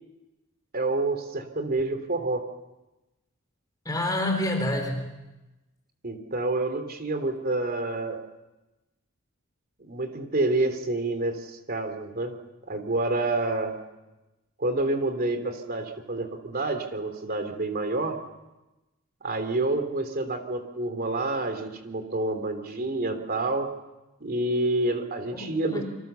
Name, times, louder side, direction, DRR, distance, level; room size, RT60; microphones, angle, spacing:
voice 1, 0.7-2.4 6.0-8.2 9.8-12.3 12.6-13.8 14.6-18.2 19.2-23.7 24.2-25.8, right 2 dB, 45° right, 7 dB, 3.1 m, -28 dB
voice 2, 3.9-5.1 25.3-25.8, left 1 dB, 20° left, 4 dB, 4.0 m, -28 dB
27.5 x 25.5 x 7.0 m, 1.0 s
head